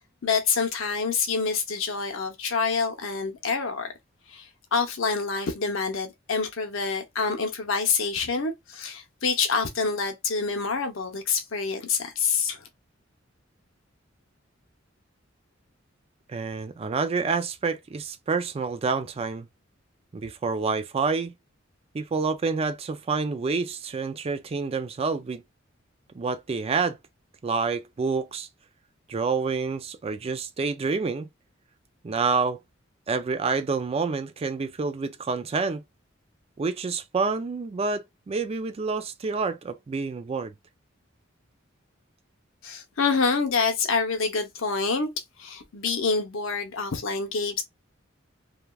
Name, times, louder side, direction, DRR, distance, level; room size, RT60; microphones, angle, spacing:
voice 1, 0.2-3.9 4.3-12.6 42.6-45.1 45.4-47.6, left 5 dB, 85° left, 0.8 m, -27 dB
voice 2, 16.3-19.5 20.1-21.3 21.9-25.4 26.1-27.0 27.4-28.5 29.1-31.3 32.0-32.6 33.1-35.8 36.6-40.5, right 4 dB, 30° right, 0.3 m, -28 dB
3.2 x 2.3 x 2.3 m
head